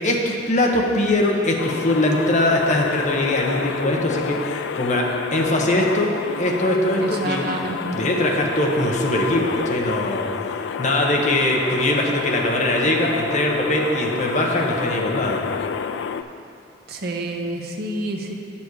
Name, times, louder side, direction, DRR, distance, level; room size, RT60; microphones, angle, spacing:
voice 1, 0.0-6.1 6.4-7.5 7.9-10.3 10.5-15.4, left 1 dB, 40° left, 0 dB, 0.9 m, -21 dB
sound 1, 1.6-16.2, left 6 dB, 70° left, 0.3 m, -29 dB
voice 2, 7.0-8.0 16.9-18.3, right 1 dB, 55° right, 2 dB, 0.7 m, -28 dB
8.4 x 7.1 x 4.7 m, 2.5 s
head